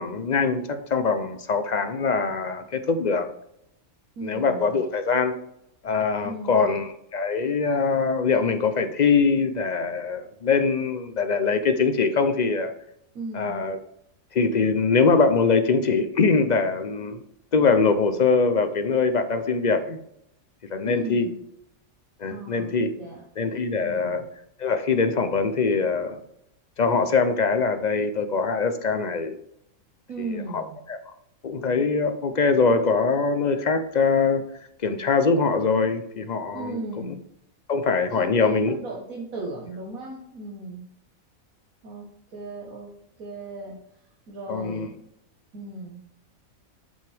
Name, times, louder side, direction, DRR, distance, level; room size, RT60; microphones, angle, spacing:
voice 1, 0.0-3.3 4.2-5.4 5.8-12.7 13.3-13.8 14.3-17.2 17.5-20.0 20.7-21.3 22.2-22.9 23.4-24.2 24.6-26.2 26.8-29.4 30.2-31.0 31.4-34.4 34.8-36.8 37.1-37.2 37.7-38.8 44.5-44.9, left 4 dB, 45° left, 8 dB, 0.5 m, -23 dB
voice 2, 4.2-4.8 6.2-6.7 13.1-13.6 20.8-21.4 22.3-23.2 23.8-24.2 30.1-30.8 36.5-37.2 38.1-40.9 41.8-42.0 42.3-42.9 43.2-43.8 44.3-45.0 45.5-46.0, right 2 dB, 80° right, -2 dB, 1.8 m, -36 dB
11.0 x 5.9 x 3.4 m, 0.78 s
omnidirectional pair, 1.5 m